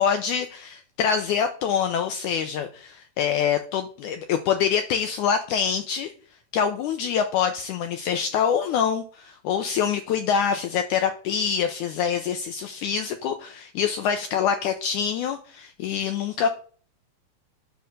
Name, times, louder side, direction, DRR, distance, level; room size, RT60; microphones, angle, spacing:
voice 1, 0.0-6.1 6.5-16.5, left 7 dB, 80° left, 7 dB, 1.7 m, -25 dB
9.5 x 3.4 x 6.4 m, 0.42 s
omnidirectional pair, 4.2 m